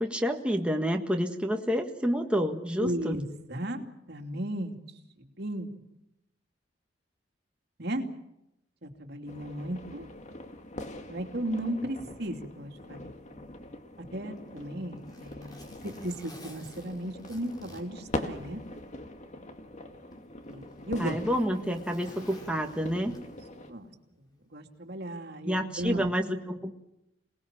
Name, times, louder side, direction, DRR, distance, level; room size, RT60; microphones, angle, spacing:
voice 1, 0.0-3.1 21.0-23.1 25.4-26.8, equal, 5° right, 3 dB, 1.7 m, -29 dB
voice 2, 2.8-4.8 5.2-5.7 7.8-8.0 8.8-10.1 11.1-13.1 14.1-18.6 20.5-21.2 23.7-23.9 24.4-26.1, right 1 dB, 60° right, 4 dB, 2.8 m, -35 dB
sound 1, 9.3-23.7, left 1 dB, 40° left, 2.2 m, -42 dB
Zipper (clothing), 14.4-18.8 19.2-19.3 20.1-23.6 24.7-24.9, left 1 dB, 20° left, 4.7 m, -53 dB
28.0 x 19.5 x 7.5 m, 0.86 s
head